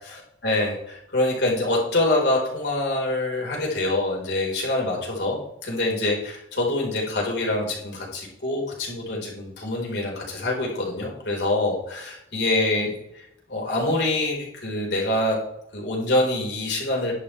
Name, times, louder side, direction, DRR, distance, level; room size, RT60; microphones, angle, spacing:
voice 1, 0.1-13.2 13.5-15.4 15.7-17.2, left 2 dB, 75° left, -2 dB, 4.3 m, -25 dB
11.0 x 10.0 x 3.3 m, 0.75 s
head